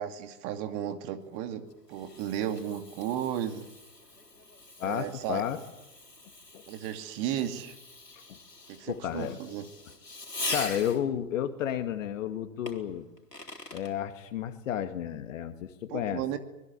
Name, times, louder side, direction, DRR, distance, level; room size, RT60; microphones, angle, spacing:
voice 1, 0.0-3.7 4.8-5.4 6.7-7.7 8.7-9.7 15.9-16.4, right 10 dB, 35° right, 7 dB, 2.5 m, -34 dB
Fireworks, 1.3-11.2 12.7-13.9, left 2 dB, 90° left, 3.7 m, -42 dB
voice 2, 4.8-5.6 6.5-6.6 8.3-8.4 8.9-9.4 10.5-13.1 13.7-16.2, left 10 dB, 55° left, 8 dB, 2.1 m, -32 dB
25.0 x 20.5 x 8.5 m, 0.98 s
figure-of-eight pair, 105°, 47 cm